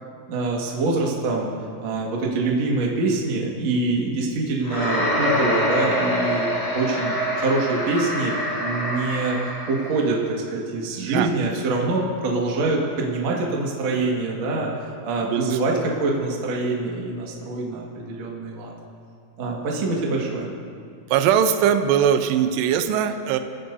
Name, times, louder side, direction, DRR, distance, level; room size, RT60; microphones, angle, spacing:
voice 1, 0.3-1.5 1.8-8.3 8.6-9.4 9.7-14.7 15.0-18.7 19.4-20.5, right 3 dB, 55° right, -3 dB, 1.9 m, -25 dB
sound 1, 4.6-10.0, equal, 50° left, 0.5 m, -25 dB
voice 2, 11.0-11.3 15.2-15.8 21.1-23.4, right 8 dB, 85° right, 7 dB, 2.4 m, -21 dB
28.0 x 15.5 x 2.8 m, 2.3 s
omnidirectional pair, 5.9 m